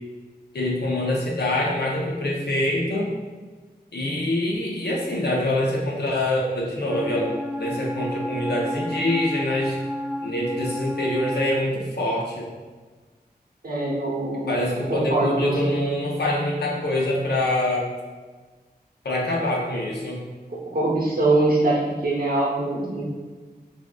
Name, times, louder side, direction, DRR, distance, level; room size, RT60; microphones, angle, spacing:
voice 1, 0.5-3.1 3.9-7.3 7.6-9.8 10.2-12.5 14.5-17.9 19.0-20.2, left 1 dB, 80° left, -3 dB, 0.7 m, -25 dB
Wind instrument woodwind instrument, 6.8-11.6, left 1 dB, 10° right, 0.3 m, -31 dB
voice 2, 13.6-14.6 14.9-15.8 20.5-23.0, right 2 dB, 65° right, -5 dB, 0.9 m, -23 dB
3.5 x 2.5 x 2.3 m, 1.3 s
wide cardioid pair, 60°, 17 cm